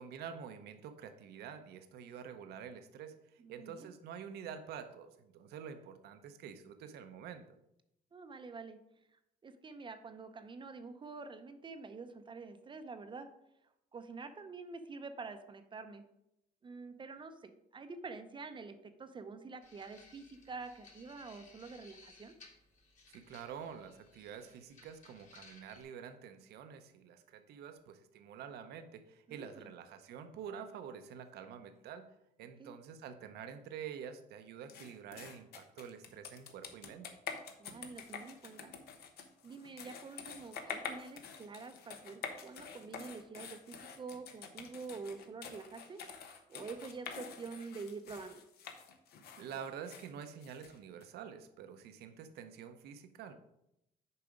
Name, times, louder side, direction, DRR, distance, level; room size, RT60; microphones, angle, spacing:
voice 1, 0.0-7.6 23.1-32.1 32.4-37.2 49.4-53.3, right 7 dB, 75° right, 8 dB, 0.8 m, -48 dB
voice 2, 3.4-3.9 8.1-8.8 9.1-13.3 13.9-16.0 16.6-22.3 29.3-29.7 32.6-32.8 37.6-38.7 39.4-46.0 46.5-48.4, right 4 dB, 30° right, 8 dB, 0.6 m, -47 dB
sound 1, 19.6-25.8, left 3 dB, 45° left, 2.1 m, -61 dB
sound 2, 34.7-51.1, left 6 dB, 70° left, 1.0 m, -47 dB
6.9 x 4.8 x 5.0 m, 0.83 s
cardioid pair, 110°, 17 cm